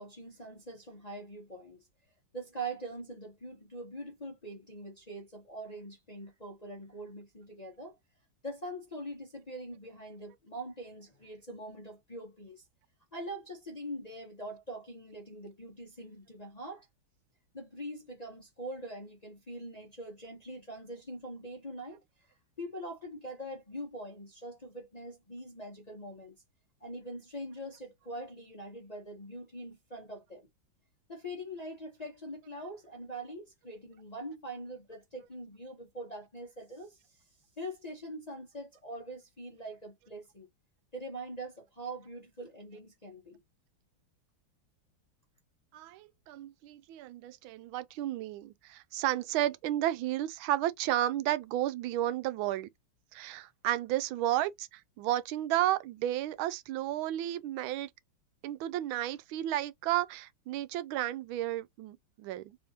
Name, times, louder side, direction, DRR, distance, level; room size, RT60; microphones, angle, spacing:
voice 1, 0.0-1.9 2.3-8.0 8.4-12.7 13.1-16.9 17.5-22.3 22.6-26.3 26.8-30.5 31.1-37.2 37.6-40.5 40.9-43.4, right 1 dB, 30° left, 0.8 m, -43 dB
voice 2, 45.7-52.7 53.1-57.9 58.4-62.6, right 13 dB, 85° right, 1.4 m, -32 dB
3.5 x 3.4 x 2.8 m
omnidirectional pair, 2.2 m